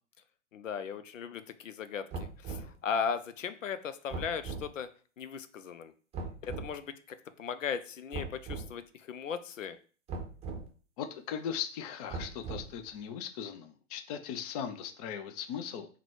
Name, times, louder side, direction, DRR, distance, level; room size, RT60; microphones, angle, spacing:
voice 1, 0.5-4.9 5.2-5.9 6.4-9.8, left 6 dB, 85° left, 12 dB, 0.5 m, -37 dB
sound 1, 2.1-2.8 4.1-4.7 6.1-6.7 8.1-8.7 10.1-10.7 12.1-12.8, right 4 dB, 15° right, 0.7 m, -39 dB
voice 2, 11.0-15.9, left 8 dB, 30° left, 8 dB, 0.4 m, -38 dB
3.9 x 2.2 x 4.4 m, 0.40 s
figure-of-eight pair, 105°, 37 cm